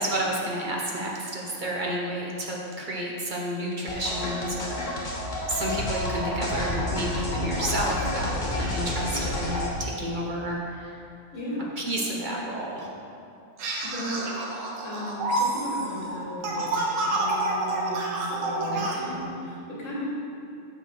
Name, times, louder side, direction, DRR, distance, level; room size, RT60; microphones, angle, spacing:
voice 1, 0.0-5.1 5.4-10.9 11.8-12.9 18.7-19.2, right 1 dB, 45° right, -3 dB, 1.0 m, -31 dB
sound 1, 3.9-9.7, left 1 dB, 45° left, 1.4 m, -30 dB
voice 2, 11.3-11.6 13.8-20.1, equal, 90° left, -7 dB, 2.3 m, -36 dB
sound 2, 13.6-19.0, right 2 dB, 90° right, 1.3 m, -28 dB
7.3 x 4.2 x 6.2 m, 2.6 s
omnidirectional pair, 1.3 m